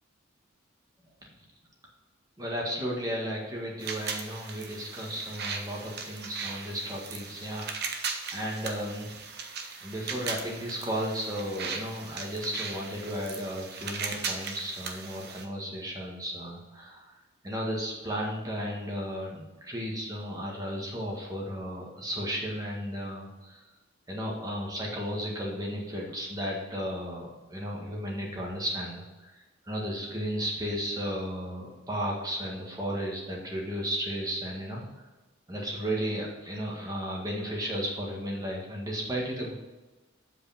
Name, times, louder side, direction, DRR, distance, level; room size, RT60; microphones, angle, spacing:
voice 1, 2.4-7.7 8.3-9.1 9.8-17.1 17.4-23.6 24.1-34.8 35.5-39.5, equal, 20° right, -2 dB, 1.7 m, -34 dB
sound 1, 3.8-15.4, right 5 dB, 50° right, 1.0 m, -38 dB
8.0 x 5.0 x 5.8 m, 1.2 s
head